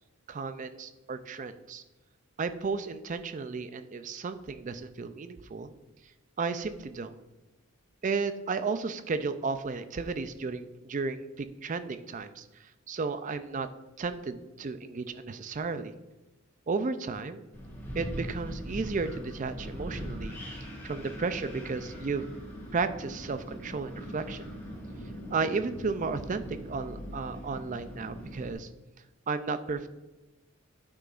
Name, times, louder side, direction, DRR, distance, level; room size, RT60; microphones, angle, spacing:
voice 1, 0.3-1.8 2.4-5.7 6.4-7.2 8.0-12.5 12.9-13.7 14.0-15.9 16.7-17.4 17.9-20.3 20.6-22.3 22.7-24.5 25.3-28.7 29.3-29.9, right 4 dB, 35° right, 11 dB, 0.4 m, -33 dB
Wind, 17.5-28.5, equal, 10° left, 1.9 m, -41 dB
9.5 x 6.1 x 2.5 m, 1.0 s
head